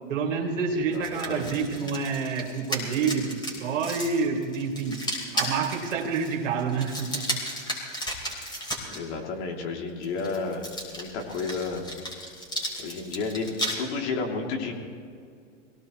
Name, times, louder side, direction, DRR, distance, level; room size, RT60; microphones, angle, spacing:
voice 1, 0.1-5.0 5.3-7.4, right 5 dB, 75° right, 1 dB, 2.6 m, -28 dB
voice 2, 0.7-1.5 8.9-10.6 10.9-11.8 12.8-14.7, left 4 dB, 65° left, 1 dB, 3.0 m, -32 dB
sound 1, 0.9-9.0 10.0-13.7, equal, 10° left, 4.2 m, -34 dB
23.0 x 17.5 x 3.2 m, 2.2 s
hypercardioid pair, 110°, 38 cm